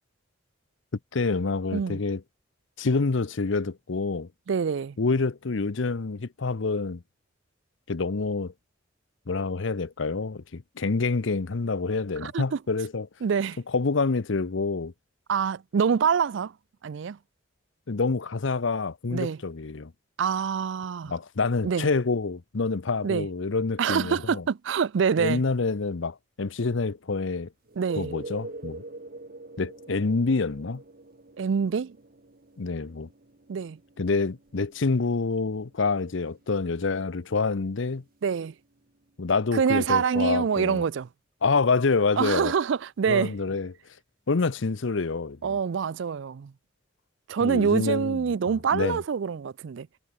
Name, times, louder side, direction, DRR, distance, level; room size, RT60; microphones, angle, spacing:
voice 1, 1.1-2.2 2.8-4.3 5.0-7.0 7.9-8.5 9.3-13.1 13.7-14.9 17.9-19.9 21.1-24.4 25.2-27.5 28.0-28.8 29.6-30.8 32.6-33.1 34.0-38.0 39.2-40.8 41.4-42.5 43.1-43.7 44.3-45.6 47.4-48.2 48.5-49.0, left 4 dB, 70° left, 0.7 m, -27 dB
voice 2, 4.5-5.0 12.2-12.6 13.2-13.6 15.3-16.5 16.8-17.2 19.1-19.4 20.2-21.1 21.6-21.9 23.0-23.3 23.8-25.4 27.8-28.1 31.4-32.0 33.5-33.8 38.2-38.5 39.5-41.1 42.2-43.4 45.4-46.5 47.3-49.9, right 6 dB, 65° right, 0.4 m, -25 dB
sound 1, 27.7-39.2 43.5-43.6, right 2 dB, 45° right, 1.2 m, -46 dB
head